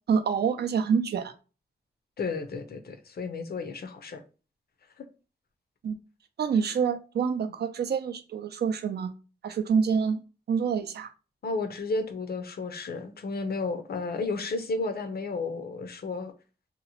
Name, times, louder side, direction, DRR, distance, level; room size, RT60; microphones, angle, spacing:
voice 1, 0.1-1.3 5.8-5.9 6.4-9.1 9.4-10.2 10.5-11.1, right 6 dB, 70° right, 0.4 m, -27 dB
voice 2, 2.2-4.2 5.0-5.1 11.4-16.3, left 3 dB, 65° left, 0.5 m, -32 dB
2.8 x 2.1 x 2.7 m
wide cardioid pair, 80°, 18 cm